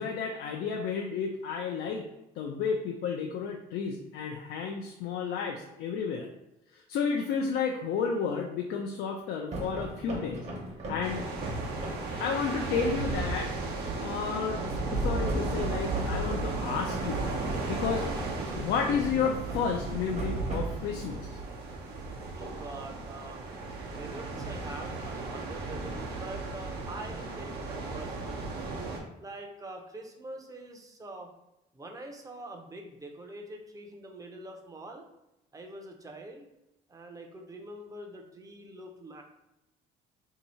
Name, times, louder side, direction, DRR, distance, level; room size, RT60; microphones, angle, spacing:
voice 1, 0.0-2.1 2.4-6.3 6.7-10.5 10.9-11.3 12.2-13.5 14.0-18.1 18.5-21.4, left 6 dB, 75° left, 1 dB, 0.5 m, -32 dB
sound 1, 9.5-12.2 15.3-21.2, right 2 dB, 40° right, 1.0 m, -40 dB
sound 2, 11.0-29.0, right 3 dB, 70° right, 0.8 m, -34 dB
voice 2, 22.3-23.5 23.9-28.4 29.2-31.3 31.7-35.0 35.5-36.5 36.9-39.2, right 1 dB, 20° right, 2 dB, 0.6 m, -44 dB
2.8 x 2.7 x 4.2 m, 0.90 s
cardioid pair, 110°, 17 cm